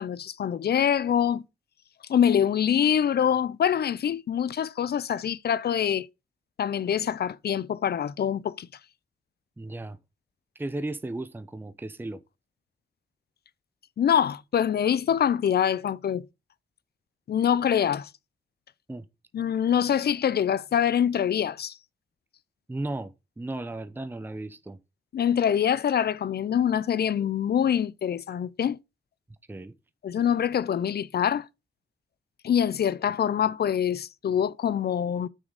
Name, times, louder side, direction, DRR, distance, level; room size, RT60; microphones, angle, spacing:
voice 1, 0.0-1.4 2.1-6.1 6.6-8.7 14.0-16.3 17.3-18.1 19.3-21.8 25.1-28.8 30.0-31.5 32.4-35.3, left 9 dB, 60° left, 0.5 m, -25 dB
voice 2, 9.6-10.0 10.6-12.2 18.9-19.1 22.7-24.8 29.5-29.7, right 2 dB, 10° right, 0.6 m, -35 dB
6.2 x 3.9 x 6.3 m
cardioid pair, 80°, 19 cm